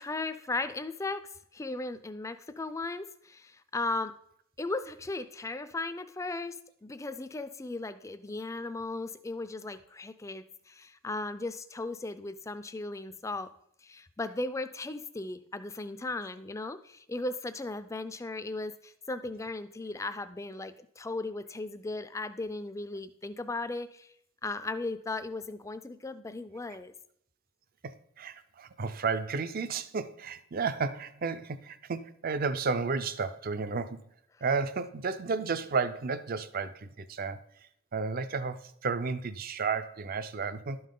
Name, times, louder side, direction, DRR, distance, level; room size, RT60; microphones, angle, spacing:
voice 1, 0.0-4.1 4.6-13.5 13.8-24.1 24.4-26.9, left 2 dB, 15° left, 11 dB, 0.4 m, -37 dB
voice 2, 27.8-34.0 34.4-37.4 37.9-40.8, right 4 dB, 45° right, 13 dB, 0.5 m, -32 dB
12.0 x 5.5 x 3.8 m, 0.70 s
head